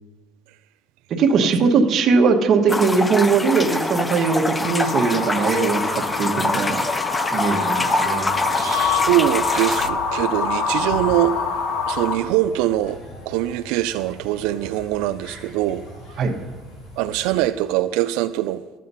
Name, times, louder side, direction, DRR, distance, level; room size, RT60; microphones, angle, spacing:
voice 1, 1.1-6.8 7.3-8.3 16.2-16.3, right 4 dB, 35° right, 1.1 m, -20 dB
sound 1, 2.7-9.9, left 2 dB, 10° left, 0.3 m, -25 dB
sound 2, 4.6-12.2, left 5 dB, 85° left, 1.9 m, -25 dB
sound 3, 8.2-17.4, equal, 60° left, 3.7 m, -41 dB
voice 2, 8.5-11.3 11.9-13.0 13.3-15.9 17.0-18.6, right 14 dB, 85° right, 0.3 m, -23 dB
12.0 x 7.5 x 5.4 m
cardioid pair, 170°, 0 cm